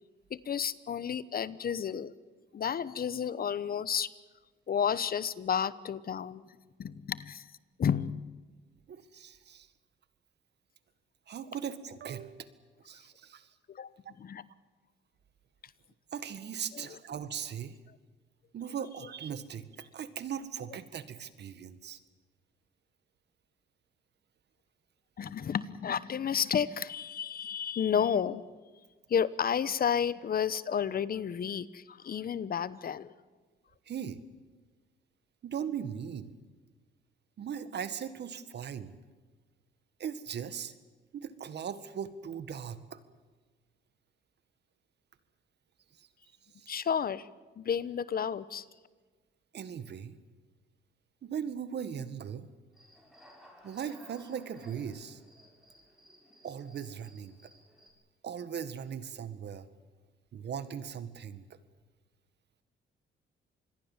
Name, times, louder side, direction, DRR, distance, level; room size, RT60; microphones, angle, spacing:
voice 1, 0.3-2.1 2.5-4.1 4.7-6.5 6.8-7.5 7.8-8.4 13.7-13.9 14.2-14.5 16.7-17.0 25.2-28.4 29.1-33.1 46.7-47.3 47.6-48.6, left 8 dB, 50° left, 18 dB, 1.1 m, -31 dB
voice 2, 8.9-9.7 11.3-12.5 12.9-13.5 16.1-17.8 18.5-22.0 33.9-34.2 35.4-36.3 37.4-38.9 40.0-40.7 41.1-43.0 46.0-46.1 46.6-46.7 49.5-50.2 51.2-52.5 53.6-55.2 56.4-57.4 58.2-59.7 60.3-61.4, right 8 dB, 60° right, 13 dB, 1.9 m, -39 dB
Human voice / Cricket, 52.7-57.9, equal, ahead, 7.9 m, -58 dB
26.5 x 21.5 x 7.4 m, 1.4 s
cardioid pair, 90°, 20 cm